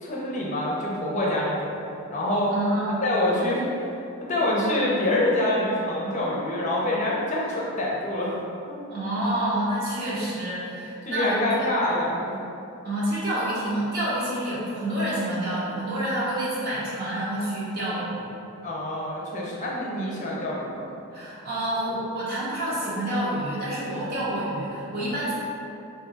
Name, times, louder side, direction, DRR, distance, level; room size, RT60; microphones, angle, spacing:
voice 1, 0.0-1.8 2.1-2.5 3.0-3.9 4.2-8.4 11.0-12.4 18.6-20.9, left 1 dB, 35° left, -4 dB, 0.6 m, -26 dB
voice 2, 2.5-3.0 8.9-11.7 12.8-18.3 21.1-25.3, right 1 dB, 45° right, -9 dB, 0.9 m, -28 dB
3.6 x 2.7 x 3.8 m, 2.7 s
head